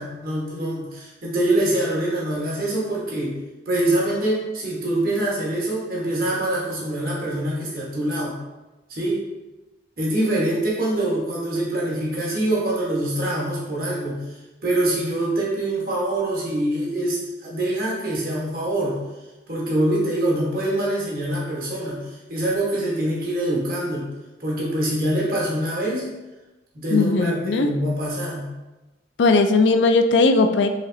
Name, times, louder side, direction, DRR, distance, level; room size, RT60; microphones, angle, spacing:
voice 1, 0.0-3.3 3.7-8.4 8.9-9.2 10.0-14.2 14.6-19.0 19.5-22.0 22.3-24.1 24.4-26.1 26.7-28.5, right 1 dB, 55° right, -5 dB, 1.4 m, -24 dB
voice 2, 26.9-27.7 29.2-30.7, left 3 dB, 80° left, 8 dB, 0.4 m, -18 dB
5.0 x 3.6 x 2.8 m, 1.1 s
head